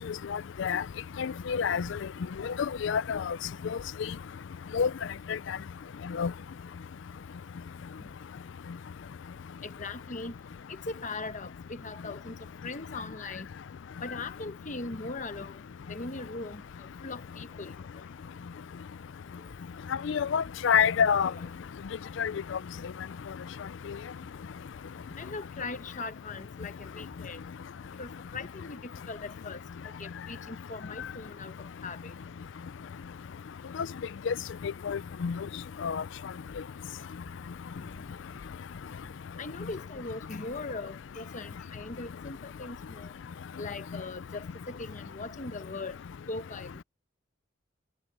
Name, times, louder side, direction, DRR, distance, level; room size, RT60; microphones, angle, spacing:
voice 1, 0.3-0.8 1.2-2.0 2.8-3.4 4.7-4.9 6.2-6.3 20.0-21.3 22.2-22.3 34.3-34.4 34.9-35.4 35.8-36.0, left 7 dB, 65° left, 0.4 m, -27 dB
voice 2, 9.6-10.3 10.9-12.3 12.6-13.5 14.0-15.6 15.9-16.6 17.0-17.8 25.2-27.4 28.0-28.8 29.1-29.6 30.0-31.5 31.8-32.1 39.4-43.1 43.6-46.0 46.3-46.8, left 3 dB, 40° left, 1.0 m, -39 dB
head